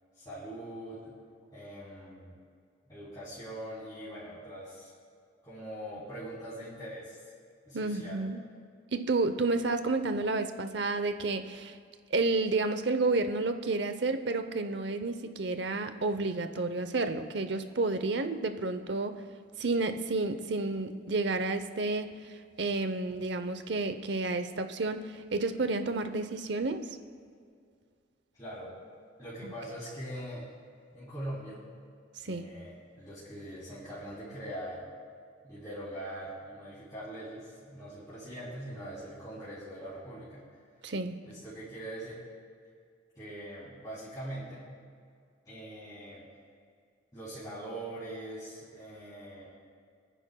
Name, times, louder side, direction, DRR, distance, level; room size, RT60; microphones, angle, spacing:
voice 1, 0.1-1.2 1.5-2.4 2.8-4.9 5.4-7.3 7.7-8.3 28.3-28.8 29.2-30.5 30.9-31.6 32.2-34.9 35.4-40.4 41.2-42.2 43.1-44.7 45.4-46.3 47.1-49.5, right 1 dB, 20° left, -11 dB, 3.0 m, -42 dB
voice 2, 7.7-8.4 8.9-11.7 12.1-19.2 19.6-22.1 22.6-26.8 29.4-29.5 32.2-32.5 40.8-41.2, right 3 dB, 60° right, 9 dB, 0.7 m, -30 dB
26.0 x 10.0 x 2.3 m, 2.2 s
head